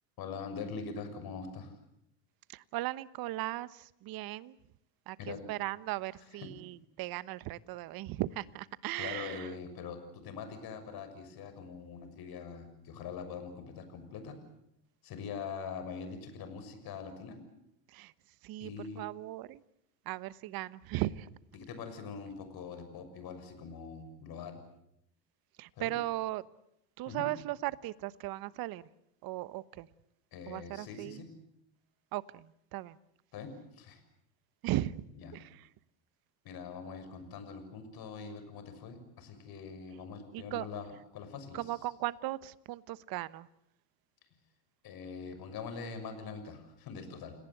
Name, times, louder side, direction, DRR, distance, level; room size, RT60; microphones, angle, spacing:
voice 1, 0.2-1.7 5.2-5.4 6.1-6.5 9.0-14.4 15.0-17.4 18.6-19.1 21.5-24.6 25.8-25.9 27.1-27.3 30.3-31.3 33.3-34.0 35.1-35.3 36.4-41.9 44.8-47.3, left 5 dB, 45° left, 9 dB, 6.5 m, -43 dB
voice 2, 2.5-4.5 5.1-9.5 17.9-18.1 18.4-18.7 19.0-19.6 20.1-21.3 25.6-26.4 27.0-28.8 29.2-29.9 30.5-31.2 32.1-33.0 34.6-34.9 35.3-35.5 40.3-40.7 41.5-43.5, right 16 dB, 45° right, 18 dB, 1.2 m, -37 dB
29.5 x 18.5 x 8.1 m, 0.78 s
hypercardioid pair, 100°, 50 cm